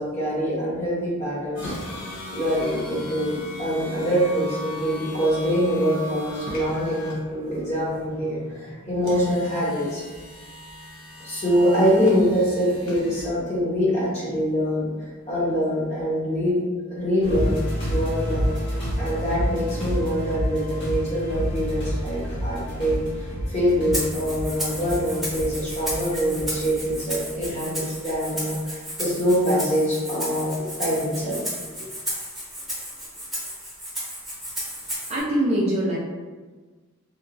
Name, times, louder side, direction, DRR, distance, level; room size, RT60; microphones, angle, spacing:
voice 1, 0.0-1.7 2.3-10.0 11.2-14.9 15.3-16.6 16.9-23.0 23.5-31.4, equal, 30° left, -7 dB, 0.9 m, -24 dB
sound 1, 1.6-16.2, left 1 dB, 75° left, 0.7 m, -39 dB
sound 2, 17.2-27.5 27.9-28.0, equal, 55° left, 1.5 m, -29 dB
Rattle (instrument), 23.9-35.2, equal, ahead, 0.9 m, -33 dB
voice 2, 34.7-36.0, right 1 dB, 30° right, -6 dB, 0.4 m, -24 dB
2.9 x 2.4 x 2.5 m, 1.3 s
head